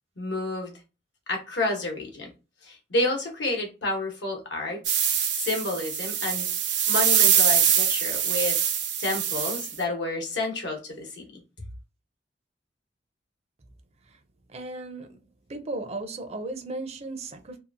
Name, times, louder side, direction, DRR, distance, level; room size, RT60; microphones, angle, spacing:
voice 1, 0.2-0.7 1.3-2.3 2.6-5.0 5.3-6.5 6.9-8.6 9.0-11.4, left 2 dB, 85° left, 1.0 m, -30 dB
sound 1, 4.8-9.8, right 8 dB, 90° right, 0.5 m, -23 dB
voice 2, 14.5-15.2 15.5-17.6, right 2 dB, 35° right, 0.5 m, -36 dB
2.8 x 2.4 x 2.5 m
head